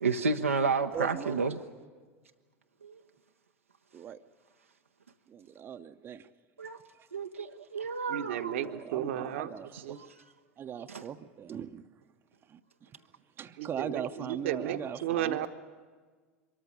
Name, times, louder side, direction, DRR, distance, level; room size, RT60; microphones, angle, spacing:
voice 1, 0.0-1.6 2.8-3.0 6.6-6.8 7.1-8.5 10.9-11.0, right 4 dB, 90° right, 4 dB, 0.7 m, -30 dB
voice 2, 0.9-1.4 3.9-4.2 5.3-6.3 7.0-7.1 8.7-10.1 10.6-11.8 12.5-13.0 13.4-15.4, right 8 dB, 30° right, 10 dB, 0.7 m, -40 dB
voice 3, 8.1-10.0 13.6-15.5, right 10 dB, 70° right, 9 dB, 1.1 m, -34 dB
23.0 x 14.0 x 10.0 m, 1.5 s
figure-of-eight pair, 80°, 7 cm